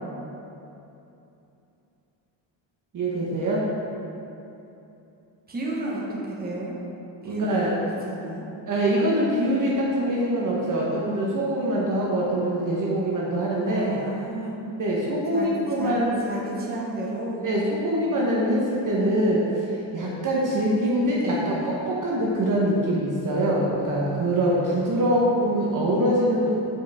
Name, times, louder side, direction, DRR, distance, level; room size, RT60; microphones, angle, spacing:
voice 1, 2.9-3.6 7.2-7.7 8.7-14.0 14.8-16.2 17.4-26.6, right 1 dB, 45° right, -5 dB, 1.0 m, -24 dB
voice 2, 5.5-6.7 7.2-8.4 13.6-14.5 15.3-15.5 15.8-16.0 16.3-17.4 21.1-21.5 26.2-26.3, right 2 dB, 20° right, -4 dB, 1.2 m, -32 dB
7.3 x 4.9 x 3.5 m, 2.8 s
cardioid pair, 115°, 46 cm